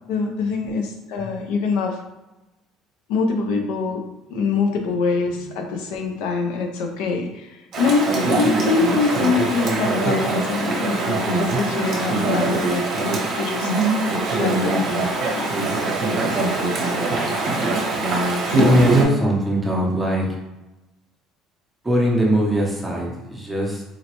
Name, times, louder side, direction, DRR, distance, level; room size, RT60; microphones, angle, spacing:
voice 1, 0.1-2.0 3.1-4.0 4.3-11.0 11.3-13.7 14.4-15.5, left 4 dB, 85° left, 3 dB, 0.5 m, -24 dB
Chatter / Stream, 7.7-19.0, right 2 dB, 40° right, 0.8 m, -22 dB
voice 2, 18.6-20.4 21.8-23.9, equal, 5° right, -3 dB, 0.6 m, -21 dB
3.9 x 2.1 x 2.9 m, 1.0 s
cardioid pair, 165°, 0 cm